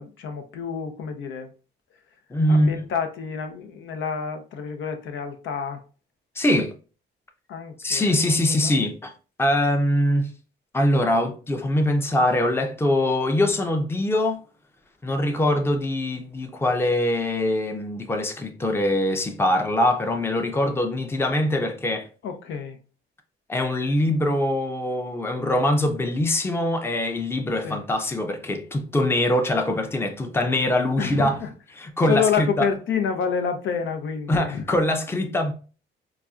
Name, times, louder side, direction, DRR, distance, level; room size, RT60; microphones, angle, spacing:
voice 1, 0.0-1.5 2.5-5.8 7.5-8.7 22.2-22.8 27.6-27.8 31.0-31.5 32.1-34.7, left 6 dB, 75° left, 0.6 m, -28 dB
voice 2, 2.3-2.7 6.4-6.7 7.8-9.1 9.4-10.3 10.7-14.4 15.0-22.1 23.5-31.4 31.8-32.7 34.3-35.5, left 1 dB, 10° left, 0.5 m, -23 dB
4.0 x 2.3 x 2.4 m
cardioid pair, 90°, 20 cm